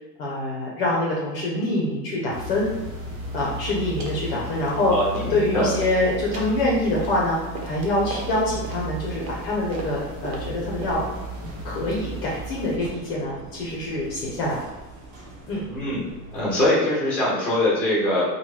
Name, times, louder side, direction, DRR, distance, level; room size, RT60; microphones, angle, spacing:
voice 1, 0.2-2.7 3.3-4.9 5.3-11.0 11.6-14.6 15.5-15.6, left 1 dB, 40° left, -3 dB, 0.6 m, -25 dB
sound 1, 2.3-12.8, right 1 dB, 55° right, 1.0 m, -35 dB
sound 2, 3.3-3.6 4.0-4.2 4.6-5.4 5.7-11.2, right 2 dB, 85° right, 1.0 m, -38 dB
voice 2, 4.8-5.6 15.7-16.0 16.3-18.2, left 1 dB, 5° left, -7 dB, 0.7 m, -22 dB
sound 3, 10.8-16.6, right 2 dB, 40° right, 0.6 m, -44 dB
3.0 x 2.2 x 3.1 m, 1.1 s
supercardioid pair, 165°, 49 cm